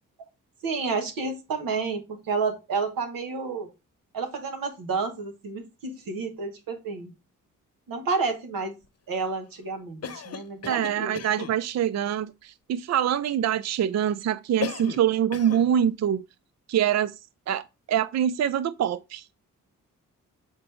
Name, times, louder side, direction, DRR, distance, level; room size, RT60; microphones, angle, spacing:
voice 1, 0.6-3.7 4.1-7.1 7.9-8.7 9.1-11.2, right 4 dB, 90° right, 1.5 m, -30 dB
Cough, 10.0-11.6 14.6-15.1 15.3-15.7, left 6 dB, 50° left, 0.9 m, -35 dB
voice 2, 10.7-16.2 16.7-17.2 17.5-17.6 17.9-19.3, right 10 dB, 55° right, 0.4 m, -25 dB
7.3 x 3.9 x 3.4 m
cardioid pair, 60°, 33 cm